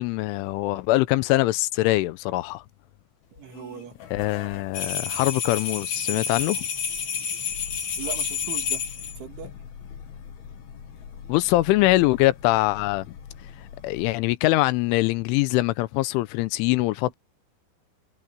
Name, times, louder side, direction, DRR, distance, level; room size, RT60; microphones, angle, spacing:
voice 1, 0.0-2.6 4.1-6.7 11.3-13.1 13.8-17.2, left 18 dB, 90° left, 3.2 m, -23 dB
sound 1, 3.2-14.1, left 7 dB, 60° left, 3.6 m, -43 dB
voice 2, 3.3-4.0 8.0-8.8 9.2-9.5, right 9 dB, 75° right, 4.9 m, -38 dB
sound 2, 4.7-9.2, left 6 dB, 40° left, 4.7 m, -29 dB
omnidirectional pair, 5.6 m